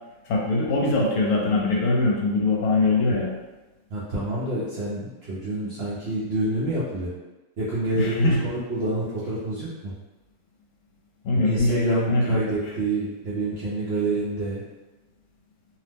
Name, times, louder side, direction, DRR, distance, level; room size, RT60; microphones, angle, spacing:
voice 1, 0.3-3.3 8.0-8.4 11.2-12.4, left 2 dB, 75° left, -2 dB, 1.1 m, -22 dB
voice 2, 3.9-7.1 7.6-9.9 11.4-14.6, right 2 dB, 65° right, -8 dB, 0.6 m, -27 dB
2.7 x 2.0 x 3.3 m, 1.1 s
omnidirectional pair, 1.6 m